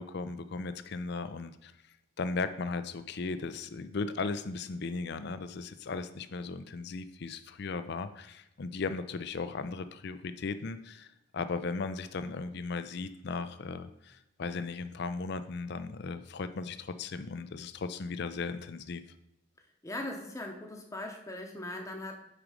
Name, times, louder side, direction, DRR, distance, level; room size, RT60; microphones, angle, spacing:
voice 1, 0.0-1.7 2.2-19.0, left 4 dB, 50° left, 11 dB, 0.4 m, -37 dB
voice 2, 19.8-22.2, left 1 dB, 15° left, 2 dB, 0.8 m, -39 dB
6.5 x 5.0 x 4.9 m, 0.84 s
head